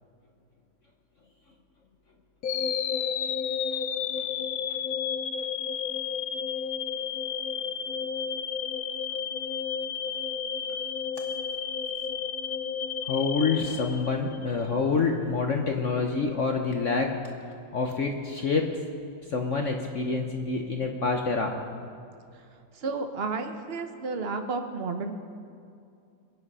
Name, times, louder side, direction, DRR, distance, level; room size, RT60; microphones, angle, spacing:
sound 1, 2.4-14.6, left 7 dB, 85° left, 0.7 m, -32 dB
voice 1, 13.1-17.2 17.7-18.7 19.3-21.5, left 4 dB, 55° left, 3 dB, 0.8 m, -27 dB
voice 2, 22.7-25.2, right 4 dB, 45° right, 6 dB, 0.8 m, -32 dB
22.5 x 8.8 x 5.5 m, 2.4 s
omnidirectional pair, 2.2 m